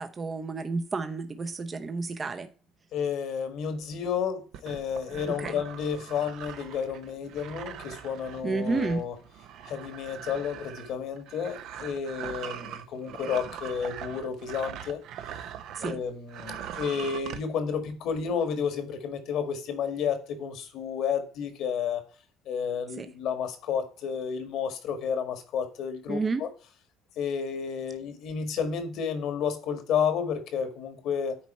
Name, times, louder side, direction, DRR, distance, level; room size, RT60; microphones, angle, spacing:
voice 1, 0.0-2.5 5.3-5.6 8.4-9.0 15.7-16.0 23.0-23.1 26.1-26.4, right 4 dB, 30° right, 0.7 m, -31 dB
voice 2, 2.9-9.1 9.6-15.0 15.8-22.0 22.5-26.5 27.2-31.4, left 7 dB, 65° left, 1.7 m, -31 dB
sound 1, 4.5-16.0 16.3-17.4, right 9 dB, 70° right, 0.8 m, -41 dB
9.6 x 4.2 x 4.2 m
supercardioid pair, 85°, 0 cm